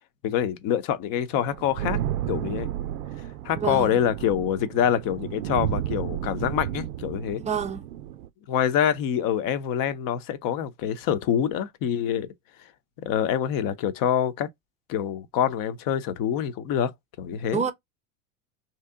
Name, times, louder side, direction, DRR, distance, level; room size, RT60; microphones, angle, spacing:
voice 1, 0.2-2.0 2.3-2.7 3.4-7.4 8.5-12.3 13.0-14.5 14.9-16.9 17.2-17.6, left 9 dB, 50° left, 0.7 m, -26 dB
sound 1, 1.3-8.3, right 12 dB, 90° right, 0.6 m, -32 dB
voice 2, 3.5-4.0 7.4-7.8 17.5-17.7, right 6 dB, 15° right, 0.5 m, -28 dB
3.1 x 2.8 x 3.5 m
supercardioid pair, 105°, 44 cm